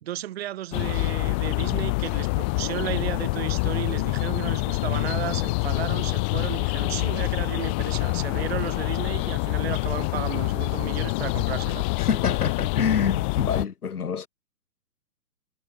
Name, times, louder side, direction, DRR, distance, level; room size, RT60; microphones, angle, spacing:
voice 1, 0.0-11.9, right 13 dB, 40° right, 2.8 m, -34 dB
sound 1, 0.7-13.7, left 29 dB, 5° left, 0.6 m, -26 dB
voice 2, 12.0-14.3, left 7 dB, 70° left, 2.2 m, -26 dB
figure-of-eight pair, 135°, 48 cm